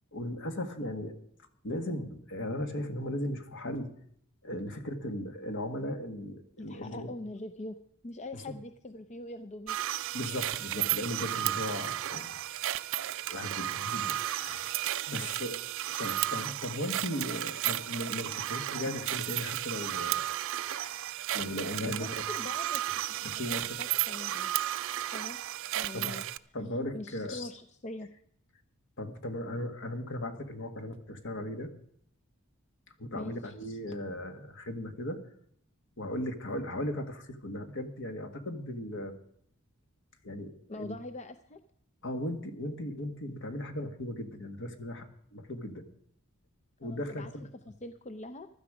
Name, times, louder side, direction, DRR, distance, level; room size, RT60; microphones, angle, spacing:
voice 1, 0.1-1.2 1.6-3.9 4.4-7.1 10.1-12.4 13.3-15.6 15.8-20.2 20.6-21.0 21.3-22.2 23.2-23.7 25.9-26.1 26.5-27.5 29.0-31.7 33.0-35.2 36.0-39.2 40.2-40.9 42.0-45.8 46.8-47.4, left 1 dB, 60° left, 7 dB, 1.8 m, -37 dB
voice 2, 6.6-7.8 8.0-9.8 15.1-15.3 21.8-24.5 25.1-25.4 25.7-26.2 26.9-28.1 33.1-33.3 40.7-41.6 46.8-48.5, left 2 dB, 30° left, 8 dB, 0.6 m, -43 dB
sound 1, 9.7-26.4, right 13 dB, 65° right, 0.5 m, -33 dB
15.5 x 12.5 x 5.0 m, 0.66 s
head